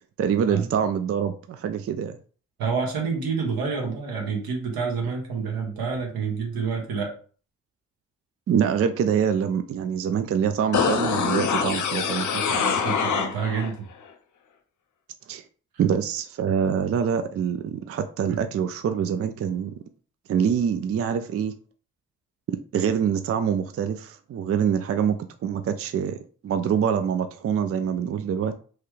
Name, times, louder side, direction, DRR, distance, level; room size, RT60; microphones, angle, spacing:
voice 1, 0.2-2.2 8.5-12.6 15.3-15.4 15.8-19.7 20.3-21.5 22.5-26.2 26.4-28.5, right 7 dB, 40° right, 9 dB, 0.4 m, -25 dB
voice 2, 2.6-7.1 12.5-13.8 18.3-18.4, right 5 dB, 80° right, 0 dB, 1.1 m, -28 dB
sound 1, 10.7-13.7 14.0-14.1, left 6 dB, 55° left, 0.6 m, -25 dB
3.0 x 2.3 x 3.1 m, 0.41 s
supercardioid pair, 45°, 36 cm